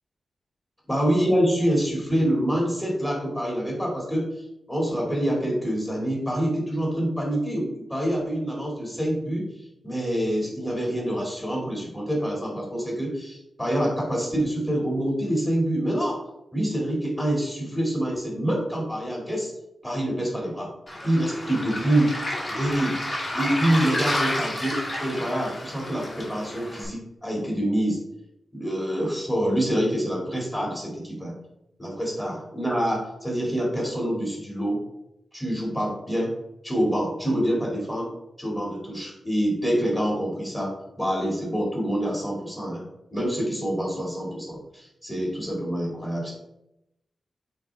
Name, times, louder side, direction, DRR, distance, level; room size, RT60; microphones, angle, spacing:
voice 1, 0.9-4.3 4.7-9.4 9.8-16.2 16.5-19.5 19.8-20.7 21.0-22.1 22.5-23.0 23.3-28.0 28.5-31.3 31.8-34.8 35.3-36.4 36.6-38.1 38.4-42.8 43.1-46.3, right 1 dB, 15° left, -3 dB, 2.2 m, -26 dB
Waves surf, 20.9-26.8, left 1 dB, 30° left, 2.6 m, -30 dB
8.7 x 3.9 x 3.5 m, 0.84 s
wide cardioid pair, 125°, 0 cm